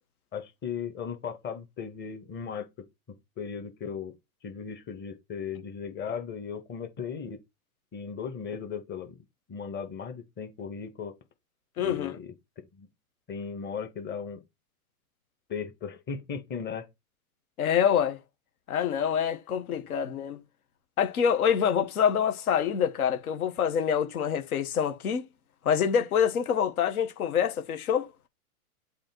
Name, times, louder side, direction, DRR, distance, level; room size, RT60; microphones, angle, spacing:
voice 1, 0.3-2.9 3.4-4.1 4.4-7.4 7.9-9.2 9.5-11.1 11.8-12.3 12.8-12.9 13.3-14.4 15.5-16.9, left 6 dB, 25° left, 1.9 m, -37 dB
voice 2, 11.8-12.2 17.6-18.2 18.7-20.4 21.0-25.2 25.6-28.1, left 8 dB, 75° left, 1.7 m, -26 dB
7.6 x 3.6 x 4.6 m
hypercardioid pair, 120°, 44 cm